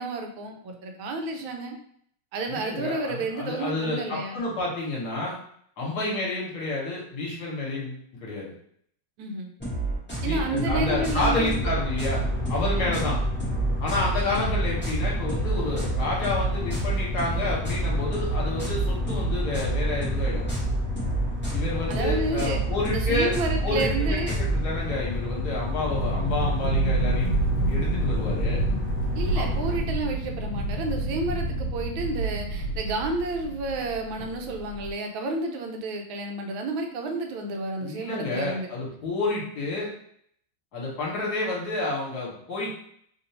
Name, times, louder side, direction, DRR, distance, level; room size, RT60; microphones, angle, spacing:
voice 1, 0.0-1.8 2.3-4.4 9.2-9.5 10.2-11.7 12.8-13.1 14.3-14.6 21.9-22.6 22.9-24.3 29.1-38.7, right 2 dB, 80° right, 3 dB, 1.3 m, -31 dB
voice 2, 2.5-5.3 5.8-8.5 10.2-12.2 12.5-13.2 13.8-20.4 21.5-23.4 23.6-27.3 27.6-28.6 29.3-29.5 37.8-39.9 40.7-42.7, left 2 dB, 55° left, -4 dB, 1.6 m, -29 dB
sound 1, 9.6-24.6, right 3 dB, 10° left, 0.8 m, -30 dB
sound 2, 10.7-29.8, left 2 dB, 15° right, 1.0 m, -30 dB
sound 3, 25.9-34.9, right 2 dB, 70° left, 1.4 m, -28 dB
3.5 x 2.6 x 2.8 m, 0.65 s
omnidirectional pair, 2.3 m